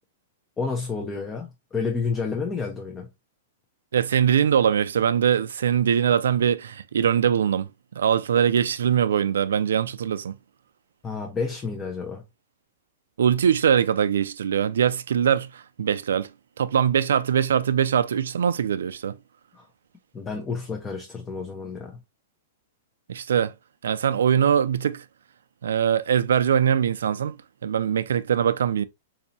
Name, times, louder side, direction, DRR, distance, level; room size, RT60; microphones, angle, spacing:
voice 1, 0.6-3.1 11.0-12.2 19.5-19.7 20.1-22.0, left 4 dB, 15° left, 0.7 m, -30 dB
voice 2, 3.9-7.7 8.0-10.4 13.2-16.3 16.6-19.2 23.1-23.5 23.8-25.0 25.6-27.4 27.6-28.8, right 8 dB, 85° right, 0.4 m, -22 dB
4.1 x 2.7 x 2.7 m
hypercardioid pair, 145°, 0 cm